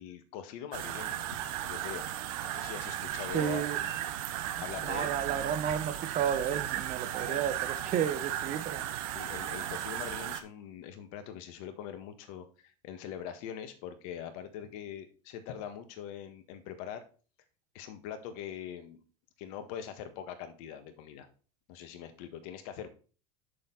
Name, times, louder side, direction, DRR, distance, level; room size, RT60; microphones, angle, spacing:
voice 1, 0.0-2.1 2.4-3.6 4.3-5.1 6.5-6.7 7.2-7.4 9.1-17.0 17.7-19.0 19.4-21.3 21.7-22.9, left 9 dB, 60° left, 1.6 m, -42 dB
sound 1, 0.7-10.4, right 12 dB, 65° right, 0.9 m, -36 dB
voice 2, 3.3-3.8 4.9-8.9, right 9 dB, 40° right, 0.9 m, -32 dB
7.1 x 6.4 x 4.1 m
hypercardioid pair, 100°, 20 cm